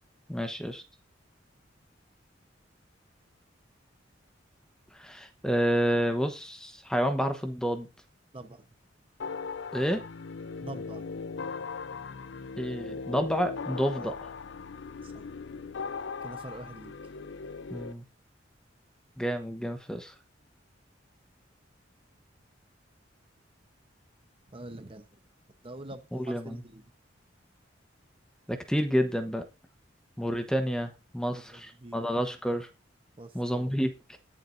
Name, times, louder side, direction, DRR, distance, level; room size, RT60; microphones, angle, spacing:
voice 1, 0.3-0.8 4.9-7.9 9.7-10.0 12.6-14.1 17.7-18.0 19.2-20.1 26.2-26.6 28.5-29.4 30.2-32.7 33.3-34.2, equal, 5° left, 1.1 m, -29 dB
voice 2, 8.3-8.7 10.6-11.1 14.0-14.1 15.0-15.3 16.2-16.9 24.5-25.1 25.6-26.8 31.3-32.0 33.2-33.7, right 1 dB, 30° right, 1.0 m, -44 dB
sound 1, 9.2-17.9, left 5 dB, 70° left, 0.5 m, -39 dB
20.5 x 7.5 x 2.6 m
head